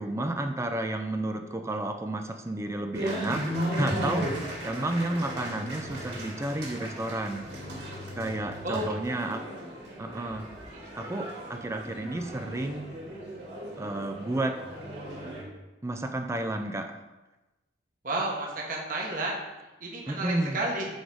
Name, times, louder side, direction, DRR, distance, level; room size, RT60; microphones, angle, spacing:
voice 1, 0.0-7.5 8.2-9.5 10.0-10.5 11.0-12.9 13.8-14.6 15.8-17.0 20.1-20.6, right 1 dB, 15° right, 6 dB, 0.4 m, -31 dB
sound 1, 2.9-15.4, equal, 60° right, 2.3 m, -36 dB
voice 2, 18.0-19.3 19.8-20.9, right 2 dB, 45° right, -2 dB, 1.3 m, -31 dB
6.4 x 4.7 x 4.7 m, 1.1 s
head